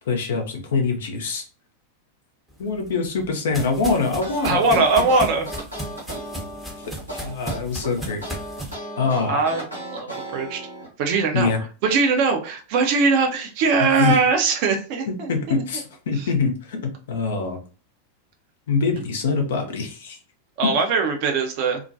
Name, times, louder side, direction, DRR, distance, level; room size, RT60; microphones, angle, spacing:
voice 1, 0.1-1.4 2.6-4.7 6.8-6.9 7.2-8.2 9.0-9.4 11.3-11.6 13.8-14.3 15.1-17.6 18.7-20.2 20.6-20.7, left 4 dB, 60° left, 4 dB, 0.6 m, -24 dB
Semi-Fast Steps, 2.6-8.7, right 1 dB, ahead, 0.7 m, -35 dB
sound 1, 4.1-10.9, right 1 dB, 90° right, 1.0 m, -36 dB
voice 2, 4.4-5.4 9.3-9.7 9.9-10.1 10.3-10.6 11.0-11.5 11.8-15.3 20.6-21.8, right 4 dB, 45° right, 4 dB, 0.5 m, -20 dB
2.3 x 2.2 x 2.6 m, 0.36 s
figure-of-eight pair, 90°, 0 cm